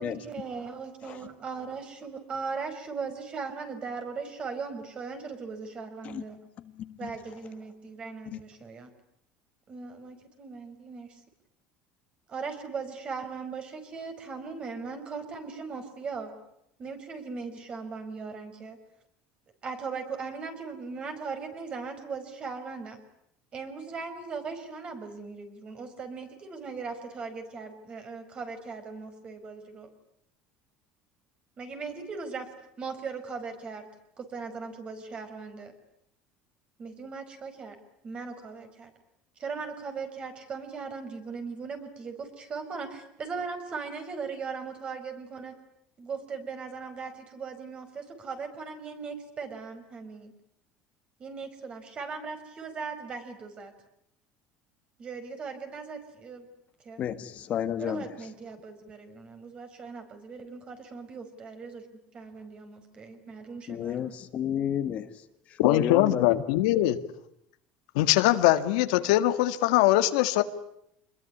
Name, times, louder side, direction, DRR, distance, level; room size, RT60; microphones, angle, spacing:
voice 1, 0.0-6.4 7.0-8.9 9.7-11.2 12.3-16.3 16.8-18.8 19.6-23.0 23.5-29.9 31.6-32.5 32.8-33.9 34.2-35.7 36.8-37.8 38.0-38.9 39.4-45.5 46.0-50.3 51.2-53.7 55.0-56.5 56.8-57.0 57.8-61.8 62.1-64.1, right 5 dB, 30° right, 7 dB, 5.0 m, -38 dB
voice 2, 6.6-7.1 8.3-8.4 57.0-58.2 63.7-66.4, left 10 dB, 40° left, 10 dB, 1.6 m, -32 dB
voice 3, 65.6-67.0 68.0-70.4, left 15 dB, 90° left, 10 dB, 1.8 m, -22 dB
27.0 x 21.5 x 9.8 m, 0.76 s
cardioid pair, 145°, 3 cm